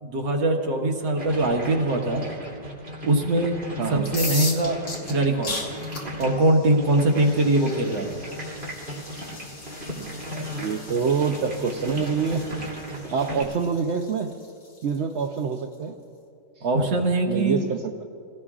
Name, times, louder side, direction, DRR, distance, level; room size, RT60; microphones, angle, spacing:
voice 1, 0.0-2.2 3.0-3.6 3.9-4.8 5.0-5.5 6.2-8.1 16.6-17.7, right 2 dB, 85° right, 1 dB, 2.1 m, -22 dB
sound 1, 1.2-13.4, left 1 dB, 35° right, 3.1 m, -36 dB
sound 2, 4.0-15.7, left 2 dB, 60° left, 2.6 m, -38 dB
voice 2, 10.0-12.5 13.1-14.4 14.8-15.9 16.6-16.7 17.3-18.0, right 6 dB, 60° right, 3 dB, 0.7 m, -26 dB
28.5 x 17.5 x 2.5 m, 2.5 s
omnidirectional pair, 1.9 m